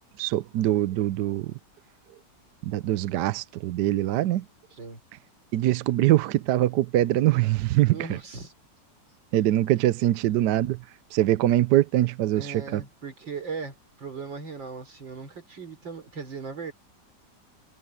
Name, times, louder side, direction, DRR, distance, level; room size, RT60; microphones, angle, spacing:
voice 1, 0.0-1.5 2.6-4.5 5.5-8.2 9.3-10.8 11.1-12.8, right 14 dB, 75° right, 1.1 m, -23 dB
voice 2, 7.9-8.5 12.3-16.7, right 5 dB, 90° right, 4.7 m, -38 dB
omnidirectional pair, 2.0 m